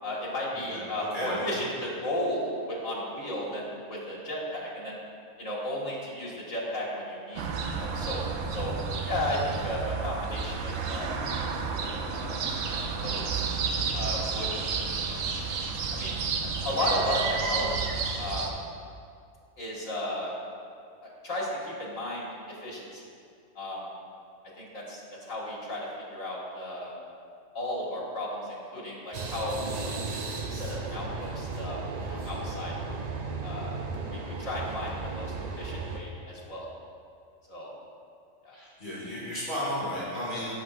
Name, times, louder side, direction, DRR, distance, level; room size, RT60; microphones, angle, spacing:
voice 1, 0.0-5.0 5.4-8.2 8.5-11.1 11.8-13.4 13.9-14.8 15.1-15.2 15.9-16.1 16.4-18.5 19.6-20.3 21.0-23.0 23.6-23.8 24.6-26.9 27.5-32.9 33.4-33.7 34.1-36.7 37.5-37.7 38.4-38.5, left 1 dB, 75° left, -5 dB, 2.2 m, -34 dB
voice 2, 0.7-1.5 38.5-40.5, equal, 40° left, -10 dB, 2.1 m, -34 dB
sound 1, 7.4-18.5, right 5 dB, 75° right, 1.0 m, -31 dB
sound 2, 29.1-36.0, right 3 dB, 60° right, 0.4 m, -35 dB
13.0 x 5.7 x 2.5 m, 2.4 s
omnidirectional pair, 1.3 m